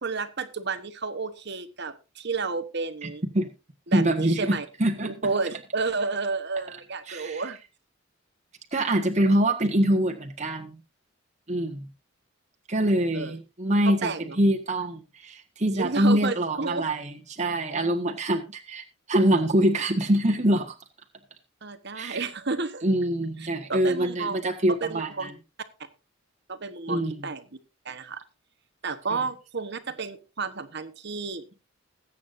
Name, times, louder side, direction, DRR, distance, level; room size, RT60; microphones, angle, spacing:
voice 1, 0.0-3.2 3.9-4.6 5.0-7.6 13.1-13.3 13.9-14.4 15.7-16.9 21.6-22.9 23.7-24.4 24.8-25.3 26.5-27.4 27.8-28.2 28.8-31.4, right 4 dB, 55° right, 11 dB, 1.2 m, -31 dB
voice 2, 3.0-3.5 3.9-5.1 7.1-7.4 8.7-10.8 11.5-11.9 12.7-20.8 21.9-22.2 22.8-25.3 26.9-27.2 29.1-29.2, right 1 dB, 35° right, 2 dB, 1.5 m, -25 dB
21.0 x 8.5 x 2.7 m, 0.28 s
head